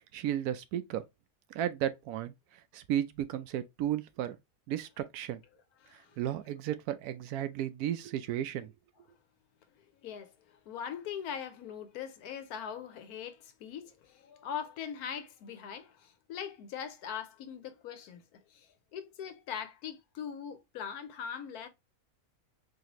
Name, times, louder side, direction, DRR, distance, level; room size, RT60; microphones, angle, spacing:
voice 1, 0.1-1.0 1.5-2.3 2.7-4.4 4.7-5.4 6.2-8.7, right 11 dB, 85° right, 1.1 m, -34 dB
voice 2, 5.8-6.2 10.0-21.7, left 8 dB, 90° left, 1.2 m, -41 dB
4.1 x 2.8 x 2.9 m
omnidirectional pair, 1.6 m